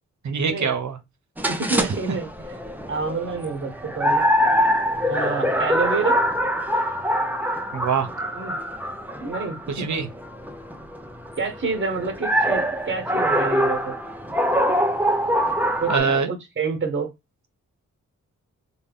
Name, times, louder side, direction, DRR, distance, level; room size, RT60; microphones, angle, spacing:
voice 1, 0.2-1.0 7.7-8.1 9.7-10.1 15.9-16.3, right 5 dB, 65° right, 0.8 m, -23 dB
sound 1, 1.4-16.0, equal, 5° right, 0.6 m, -24 dB
voice 2, 1.5-2.3 2.9-4.2 5.0-6.2 8.3-8.6 9.2-9.9 11.4-13.9 15.8-17.1, right 4 dB, 35° right, 1.1 m, -28 dB
2.9 x 2.3 x 3.5 m
cardioid pair, 55°, 31 cm